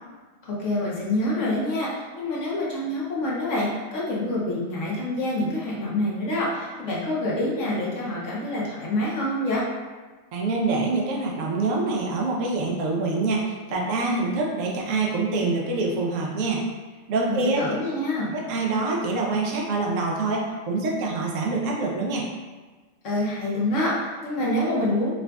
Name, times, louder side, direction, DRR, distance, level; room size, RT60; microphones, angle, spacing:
voice 1, 0.4-9.6 17.3-18.3 23.0-25.1, left 1 dB, 65° left, -5 dB, 1.1 m, -26 dB
voice 2, 10.3-16.7 17.1-17.6 18.3-22.2, right 3 dB, 70° right, -2 dB, 1.0 m, -25 dB
4.8 x 2.4 x 2.3 m, 1.3 s
omnidirectional pair, 1.5 m